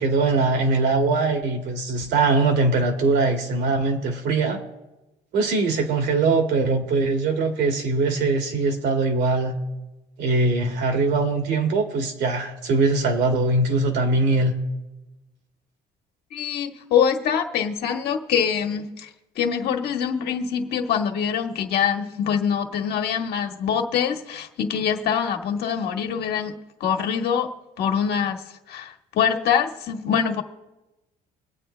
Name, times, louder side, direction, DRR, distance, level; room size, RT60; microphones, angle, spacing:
voice 1, 0.0-4.6 5.3-9.6 10.2-14.5, right 3 dB, 85° right, 4 dB, 2.2 m, -21 dB
voice 2, 16.3-19.1 19.3-26.5 26.8-27.5 27.8-28.4 28.7-30.4, left 7 dB, 70° left, 4 dB, 1.5 m, -24 dB
24.5 x 8.8 x 3.3 m, 1.0 s
cardioid pair, 110°, 17 cm